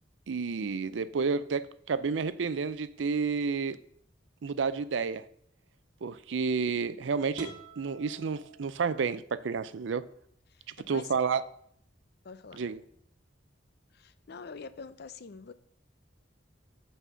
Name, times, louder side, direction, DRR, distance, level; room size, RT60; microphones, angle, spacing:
voice 1, 0.3-3.8 4.4-5.2 6.0-10.0 10.9-11.4 12.5-12.8, right 5 dB, 80° right, 0.5 m, -30 dB
sound 1, 7.3-9.3, right 3 dB, 50° right, 1.4 m, -48 dB
voice 2, 10.5-11.2 12.2-12.6 13.9-15.5, left 5 dB, 60° left, 0.6 m, -45 dB
9.0 x 4.2 x 6.1 m
head